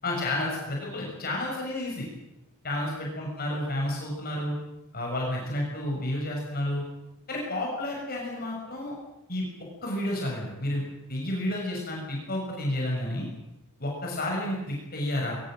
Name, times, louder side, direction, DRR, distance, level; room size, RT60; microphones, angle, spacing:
voice 1, 0.0-2.1 2.6-4.5 4.9-6.8 7.3-8.9 9.3-9.4 9.8-10.8 11.1-13.3 13.8-15.4, left 1 dB, 45° left, -2 dB, 6.7 m, -30 dB
22.5 x 22.0 x 7.8 m, 0.92 s
head